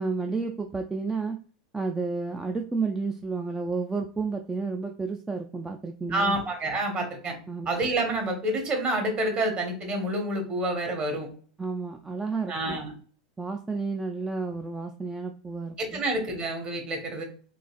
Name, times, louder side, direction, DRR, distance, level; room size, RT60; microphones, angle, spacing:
voice 1, 0.0-1.4 1.7-6.4 7.5-7.7 11.6-12.8 13.4-16.0, right 4 dB, 10° right, 3 dB, 0.3 m, -31 dB
voice 2, 6.1-7.4 7.6-11.3 12.5-12.9 15.8-17.2, right 1 dB, 30° right, 3 dB, 1.3 m, -28 dB
3.9 x 2.5 x 2.4 m, 0.43 s
hypercardioid pair, 95°, 4 cm